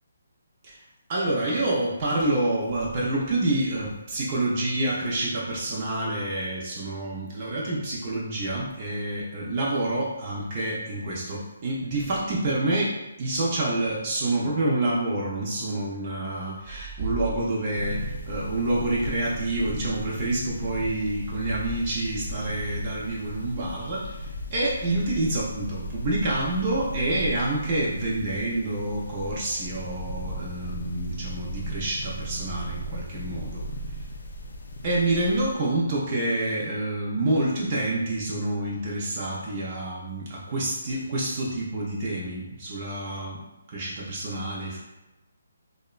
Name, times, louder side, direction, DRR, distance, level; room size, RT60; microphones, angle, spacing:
voice 1, 1.1-33.6 34.8-43.4 43.7-44.8, right 2 dB, 30° right, -5 dB, 0.5 m, -28 dB
sound 1, 17.7-35.5, right 1 dB, 70° left, 0.4 m, -36 dB
2.8 x 2.2 x 2.3 m, 1.0 s
hypercardioid pair, 165°, 0 cm